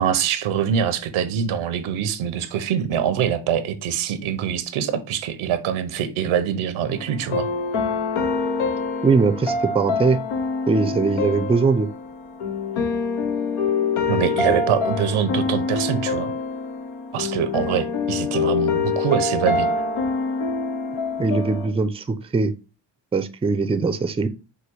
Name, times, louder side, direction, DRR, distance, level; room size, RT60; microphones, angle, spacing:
voice 1, 0.0-7.5 14.1-16.3 17.1-19.7, right 8 dB, 85° right, 0.7 m, -24 dB
sound 1, 6.9-21.7, left 4 dB, 85° left, 0.8 m, -25 dB
voice 2, 9.0-10.2 10.7-11.9 14.5-14.6 21.2-22.5 23.1-24.3, right 4 dB, 15° right, 0.4 m, -21 dB
4.8 x 2.2 x 4.5 m
supercardioid pair, 50°, 48 cm